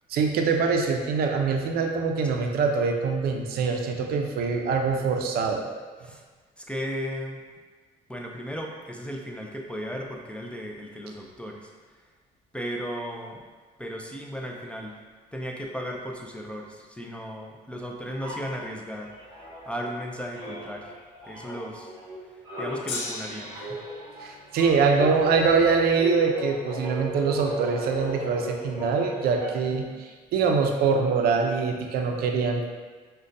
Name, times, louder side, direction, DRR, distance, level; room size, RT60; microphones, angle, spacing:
voice 1, 0.1-5.7 24.2-32.7, right 5 dB, 65° right, 3 dB, 0.4 m, -24 dB
voice 2, 6.6-7.4 8.1-11.7 12.0-12.1 12.5-13.4 13.8-15.0 15.3-21.0 21.3-22.0 22.2-23.8 24.2-24.4, equal, 5° left, 0 dB, 0.3 m, -36 dB
sound 1, 18.2-20.0 20.3-29.8, equal, 20° right, 1.3 m, -37 dB
Gong, 22.9-29.2 30.0-30.1, left 3 dB, 90° left, 0.6 m, -42 dB
5.1 x 2.2 x 2.5 m, 1.4 s
cardioid pair, 110°, 17 cm